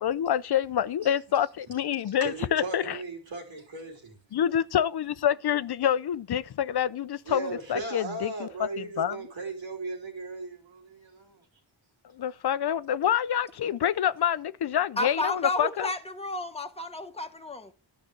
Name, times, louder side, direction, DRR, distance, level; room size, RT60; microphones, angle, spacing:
voice 1, 0.0-3.0 4.3-9.2 12.1-15.9, left 9 dB, 60° left, 0.6 m, -27 dB
voice 2, 2.2-4.2 7.3-11.4, right 3 dB, 85° right, 3.7 m, -37 dB
voice 3, 15.0-17.7, left 2 dB, 15° left, 1.3 m, -32 dB
11.5 x 5.2 x 7.9 m
cardioid pair, 65°, 46 cm